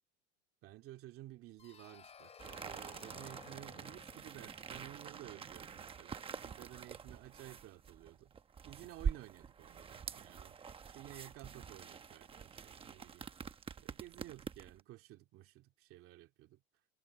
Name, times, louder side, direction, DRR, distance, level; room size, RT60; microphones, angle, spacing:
voice 1, 0.6-8.3 8.6-10.6 10.9-13.3 13.8-16.6, right 15 dB, 40° right, 2.6 m, -54 dB
sound 1, 1.6-6.3, left 6 dB, 20° left, 4.4 m, -59 dB
sound 2, 2.4-14.8, right 6 dB, 15° right, 1.0 m, -46 dB
cardioid pair, 160°, 34 cm